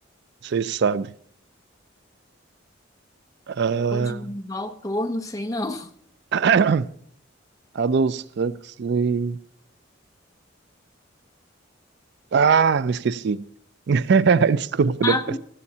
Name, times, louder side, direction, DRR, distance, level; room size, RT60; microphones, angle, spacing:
voice 1, 0.4-1.1 3.5-4.3 6.3-6.9 7.8-8.5 8.8-9.4 12.3-13.5 13.9-15.2, right 5 dB, 60° right, 0.4 m, -21 dB
voice 2, 3.9-5.9 15.0-15.4, left 2 dB, 15° left, 0.8 m, -28 dB
17.0 x 13.0 x 2.8 m
head